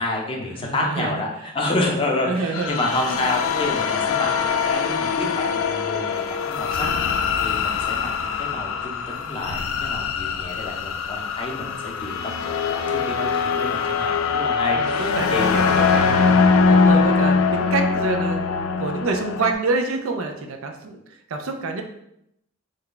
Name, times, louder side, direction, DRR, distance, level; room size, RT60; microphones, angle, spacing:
voice 1, 0.0-15.6, left 2 dB, 25° left, -1 dB, 0.5 m, -29 dB
voice 2, 0.6-1.2 1.7-2.0 2.3-2.8 3.1-3.2 11.6-11.7 14.8-21.0 21.3-21.8, right 3 dB, 80° right, 5 dB, 0.5 m, -27 dB
sound 1, 2.5-19.5, left 5 dB, 80° left, 0.3 m, -22 dB
3.3 x 2.2 x 3.8 m, 0.79 s
head